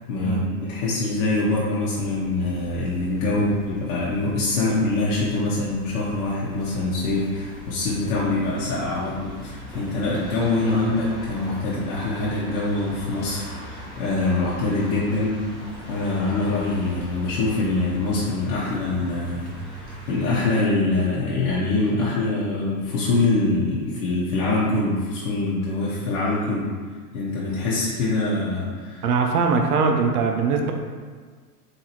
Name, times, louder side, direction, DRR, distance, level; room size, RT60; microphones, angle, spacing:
voice 1, 0.1-15.4 15.9-26.7 27.1-29.0, left 2 dB, 65° left, -8 dB, 0.9 m, -24 dB
sound 1, 2.0-20.6, right 1 dB, ahead, 0.9 m, -40 dB
voice 2, 29.0-30.7, right 5 dB, 75° right, 3 dB, 0.7 m, -21 dB
4.0 x 2.7 x 2.9 m, 1.5 s
hypercardioid pair, 125°, 46 cm